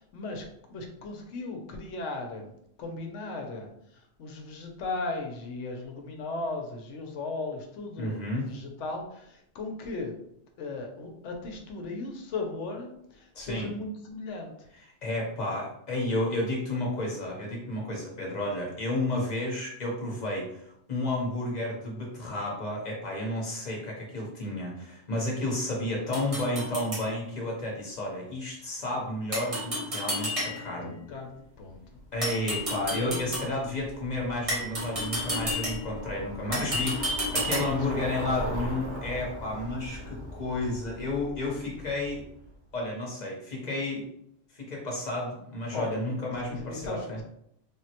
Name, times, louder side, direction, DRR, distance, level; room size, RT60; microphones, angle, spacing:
voice 1, 0.0-2.5 2.8-8.2 8.5-10.1 10.6-14.5 30.8-31.8 32.9-33.3 37.3-38.4 45.7-46.1 46.5-47.2, left 3 dB, 70° left, 2 dB, 0.9 m, -37 dB
voice 2, 8.0-8.5 13.3-13.7 15.0-31.0 32.1-42.2 42.7-44.1 44.5-47.2, left 1 dB, 40° left, -3 dB, 0.8 m, -32 dB
sound 1, 26.1-27.1 29.3-30.9 32.2-33.6 34.5-36.0 36.5-37.9, equal, 30° right, 0.9 m, -32 dB
Bicycle, 31.6-42.5, equal, 65° right, 1.1 m, -40 dB
3.4 x 2.1 x 2.8 m, 0.74 s
omnidirectional pair, 1.3 m